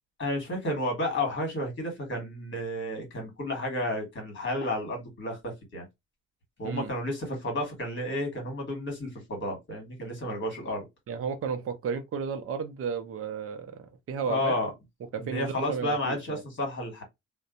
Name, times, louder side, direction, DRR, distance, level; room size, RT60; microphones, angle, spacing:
voice 1, 0.2-5.8 6.6-10.8 14.3-14.7 15.2-17.0, left 1 dB, 40° left, 1.5 m, -31 dB
voice 2, 11.1-14.6 15.1-16.4, right 6 dB, 45° right, 0.6 m, -33 dB
2.6 x 2.2 x 2.4 m
cardioid pair, 100°, 31 cm